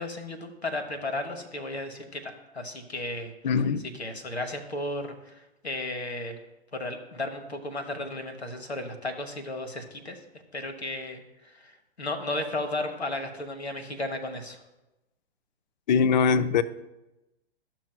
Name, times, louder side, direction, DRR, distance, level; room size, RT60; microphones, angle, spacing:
voice 1, 0.0-6.4 6.7-10.2 10.5-14.6, left 2 dB, 90° left, 1.0 m, -34 dB
voice 2, 3.4-3.8 15.9-16.6, left 6 dB, 45° left, 0.4 m, -22 dB
12.5 x 6.0 x 2.2 m
figure-of-eight pair, 115°, 31 cm